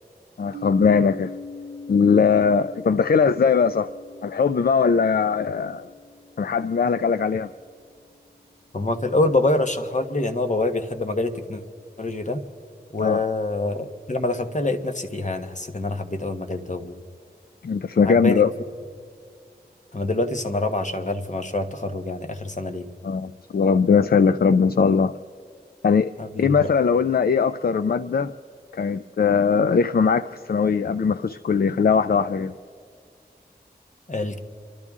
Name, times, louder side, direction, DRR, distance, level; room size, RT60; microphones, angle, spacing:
voice 1, 0.4-1.3 1.9-3.9 4.2-5.9 6.4-7.5 13.0-13.2 17.6-18.5 23.0-25.2 25.8-26.1 26.4-28.3 28.7-32.5, left 5 dB, 65° left, 13 dB, 0.4 m, -20 dB
sound 1, 0.5-8.3, left 3 dB, 70° right, 0.9 m, -42 dB
voice 2, 8.7-11.6 12.0-12.4 12.9-17.0 18.0-18.5 19.9-22.9 26.2-26.7 34.1-34.4, left 2 dB, 45° left, 6 dB, 1.2 m, -25 dB
29.5 x 12.0 x 3.6 m, 2.4 s
wide cardioid pair, 40°, 17 cm